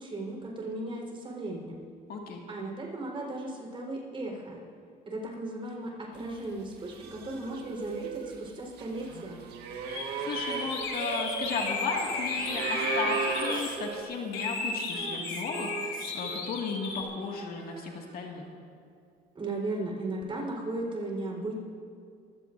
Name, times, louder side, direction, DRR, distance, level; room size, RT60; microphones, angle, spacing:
voice 1, 0.0-1.8 2.5-4.6 5.0-9.4 19.3-21.5, right 2 dB, 30° right, -1 dB, 4.3 m, -36 dB
voice 2, 2.1-2.4 10.2-18.4, left 4 dB, 60° left, 0 dB, 2.1 m, -35 dB
sound 1, 6.4-6.6 6.9-14.0, right 5 dB, 75° right, 1.6 m, -35 dB
sound 2, 9.9-10.1 10.3-13.7 14.3-17.0, left 4 dB, 80° left, 2.5 m, -34 dB
Female singing, 12.1-19.1 20.2-20.3, right 5 dB, 55° right, 1.4 m, -46 dB
24.0 x 16.0 x 2.7 m, 2.4 s
cardioid pair, 110°, 17 cm